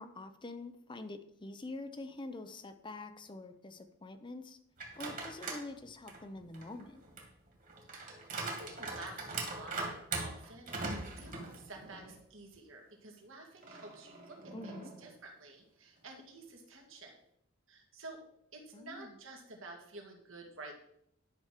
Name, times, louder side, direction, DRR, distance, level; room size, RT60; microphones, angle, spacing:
voice 1, 0.0-4.6 5.0-7.0 14.5-14.9 18.7-19.2, left 2 dB, 25° left, 8 dB, 0.6 m, -46 dB
sound 1, 4.8-5.7 6.1-12.2 12.5-12.6 13.6-15.1, right 3 dB, 40° right, 2.2 m, -41 dB
voice 2, 7.9-17.1 17.7-18.2 18.5-20.7, right 2 dB, 75° right, 1 dB, 2.2 m, -51 dB
11.0 x 6.0 x 5.0 m, 0.73 s
head